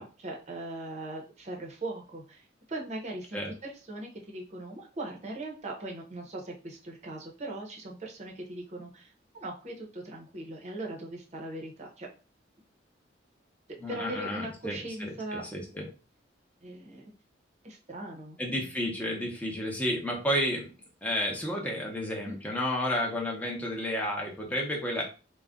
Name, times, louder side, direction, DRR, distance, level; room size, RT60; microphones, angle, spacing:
voice 1, 0.0-12.1 13.9-15.4 16.6-17.1 17.6-18.7 22.2-22.4, right 2 dB, 35° right, 0 dB, 0.7 m, -40 dB
voice 2, 13.8-15.9 18.4-20.7 21.0-25.0, equal, 10° left, -1 dB, 0.7 m, -31 dB
2.4 x 2.1 x 3.5 m, 0.34 s
head